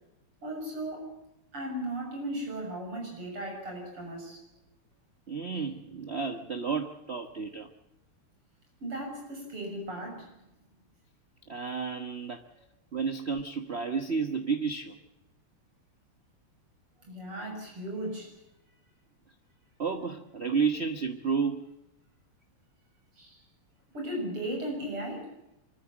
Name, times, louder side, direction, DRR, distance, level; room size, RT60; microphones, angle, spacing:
voice 1, 0.4-1.2 1.5-4.4 8.8-10.3 17.0-18.3 23.2-23.4 23.9-25.3, right 1 dB, 85° right, 2 dB, 7.8 m, -36 dB
voice 2, 5.3-7.7 11.5-12.4 12.9-15.0 19.8-21.7, right 5 dB, 35° right, 7 dB, 1.2 m, -31 dB
25.5 x 14.0 x 7.4 m, 0.86 s
omnidirectional pair, 2.4 m